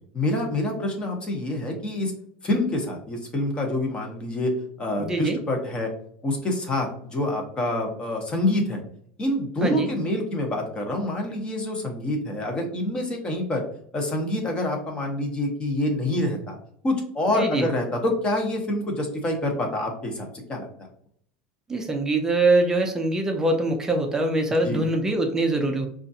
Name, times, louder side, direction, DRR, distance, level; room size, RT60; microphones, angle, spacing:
voice 1, 0.1-2.1 2.4-4.5 4.8-5.9 6.2-8.8 9.2-13.6 13.9-16.6 16.8-20.7 24.5-24.8, left 1 dB, 20° left, 2 dB, 0.9 m, -26 dB
voice 2, 5.0-5.4 9.6-9.9 17.3-17.7 21.7-25.9, right 2 dB, 10° right, 3 dB, 0.5 m, -23 dB
5.1 x 2.4 x 2.7 m, 0.63 s
supercardioid pair, 140°, 4 cm